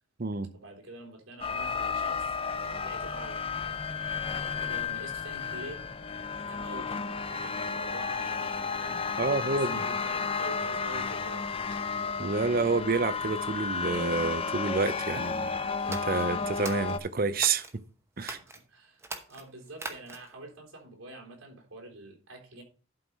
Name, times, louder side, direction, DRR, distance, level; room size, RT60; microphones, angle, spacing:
voice 1, 0.5-3.4 4.2-5.9 6.4-11.4 18.2-22.6, right 2 dB, 90° right, 3.7 m, -46 dB
sound 1, 1.4-17.0, left 5 dB, 25° left, 0.5 m, -33 dB
voice 2, 9.2-9.9 12.2-15.5 15.9-17.7 18.2-18.4, right 4 dB, 45° right, 0.6 m, -28 dB
sound 2, 15.8-17.8 18.2-18.6 19.0-20.4, right 2 dB, 15° right, 0.9 m, -41 dB
11.5 x 4.7 x 5.4 m
head